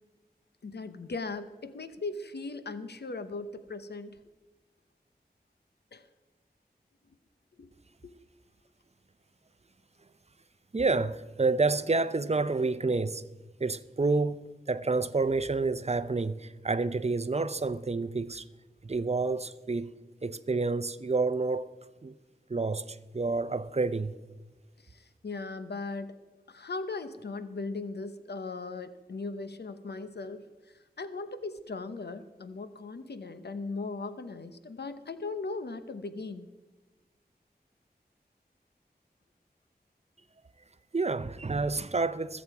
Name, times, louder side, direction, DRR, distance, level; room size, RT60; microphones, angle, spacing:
voice 1, 0.6-4.2 5.9-6.1 7.6-7.7 8.0-8.1 24.8-26.2 26.5-36.5, left 3 dB, 90° left, 0.9 m, -38 dB
voice 2, 10.7-13.3 13.6-18.5 18.8-19.9 20.2-21.7 22.0-22.1 22.5-24.1 40.9-42.4, right 3 dB, 40° right, 0.6 m, -29 dB
21.5 x 7.3 x 4.7 m
wide cardioid pair, 45°, 17 cm